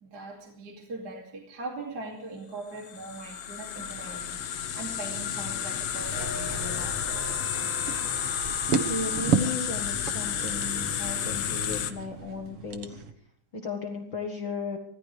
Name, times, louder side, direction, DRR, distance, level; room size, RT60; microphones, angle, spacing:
voice 1, 0.0-7.0, right 2 dB, 30° right, 1 dB, 3.0 m, -41 dB
sound 1, 2.8-11.9, left 9 dB, 70° left, 2.4 m, -31 dB
sound 2, 3.9-13.1, right 5 dB, 55° right, 2.1 m, -35 dB
sound 3, 6.0-12.5, right 3 dB, 75° right, 4.8 m, -42 dB
voice 2, 8.7-13.0 13.5-14.8, left 3 dB, 45° left, 3 dB, 2.0 m, -35 dB
25.0 x 17.0 x 3.4 m, 0.65 s
omnidirectional pair, 3.5 m